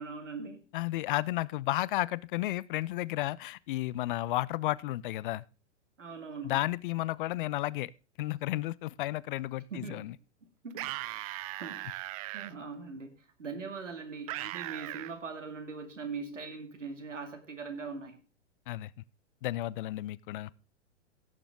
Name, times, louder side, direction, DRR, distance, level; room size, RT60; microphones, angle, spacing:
voice 1, 0.0-0.6 6.0-6.6 9.7-10.1 10.6-11.1 11.5-13.1 13.4-18.2, right 4 dB, 85° right, 2.5 m, -41 dB
voice 2, 0.7-5.4 6.4-7.9 8.2-10.1 18.7-18.9 19.4-20.5, left 16 dB, 45° left, 0.5 m, -32 dB
sound 1, 10.7-12.5 14.3-15.1, right 17 dB, 30° right, 0.4 m, -38 dB
16.5 x 6.9 x 3.7 m
figure-of-eight pair, 105°, 36 cm